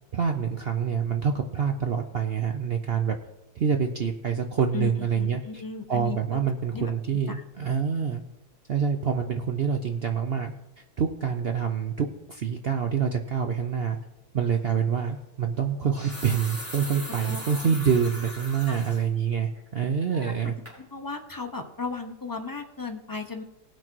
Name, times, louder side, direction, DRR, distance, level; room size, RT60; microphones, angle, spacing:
voice 1, 0.1-3.2 3.6-5.4 5.9-8.2 8.7-10.5 11.0-14.0 14.3-20.5, right 7 dB, 60° right, 5 dB, 0.6 m, -26 dB
voice 2, 4.7-6.2 6.7-7.7 17.2-17.7 18.7-18.8 20.2-23.4, left 5 dB, 25° left, 4 dB, 0.4 m, -36 dB
sound 1, 14.5-14.7 15.7-19.0 19.5-19.6 20.1-20.4 20.7-20.8, equal, 10° right, 3.9 m, -39 dB
18.5 x 6.2 x 4.5 m, 0.99 s
omnidirectional pair, 1.8 m